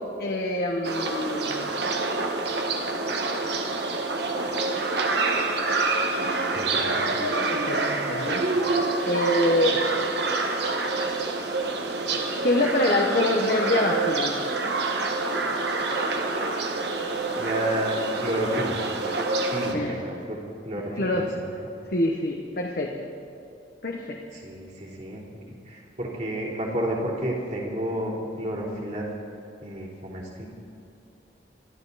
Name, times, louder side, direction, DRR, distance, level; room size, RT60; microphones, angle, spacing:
voice 1, 0.2-1.7 7.5-8.4 9.0-9.8 12.4-14.5 19.7-19.9 21.0-21.3 21.9-23.1 23.8-24.2, left 1 dB, 55° left, 0 dB, 1.1 m, -25 dB
sound 1, 0.8-19.7, right 3 dB, 65° right, 1.5 m, -27 dB
voice 2, 6.5-7.1 8.2-8.4 17.3-18.9 19.4-21.3 24.3-25.2 25.7-29.1 29.6-30.5, right 1 dB, 40° right, -4 dB, 3.4 m, -31 dB
25.0 x 12.5 x 4.2 m, 2.6 s
head